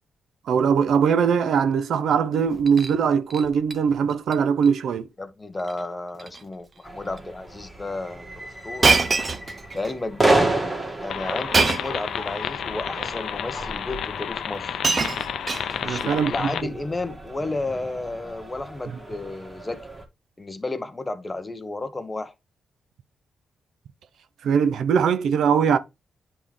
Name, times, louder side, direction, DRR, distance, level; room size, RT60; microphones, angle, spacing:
voice 1, 0.5-5.1 15.8-16.5 24.4-25.8, right 7 dB, 80° right, 0.6 m, -21 dB
Shatter, 2.5-2.9 3.3-3.8 4.1-4.3 4.6-4.7 5.6-5.8 6.1-6.4 7.2-7.3 8.8-9.9 11.5-12.0 13.0-13.1 14.2-14.3 14.5-16.1 17.0-17.3, right 3 dB, 40° right, 0.8 m, -24 dB
voice 2, 5.2-8.9 9.7-10.4 11.0-14.8 15.8-19.8 20.4-22.3, left 2 dB, 20° left, 0.9 m, -32 dB
sound 1, 6.8-20.0, right 2 dB, 15° right, 1.9 m, -31 dB
sound 2, 11.1-16.6, left 8 dB, 80° left, 0.5 m, -31 dB
9.9 x 3.7 x 3.2 m
cardioid pair, 85°, 0 cm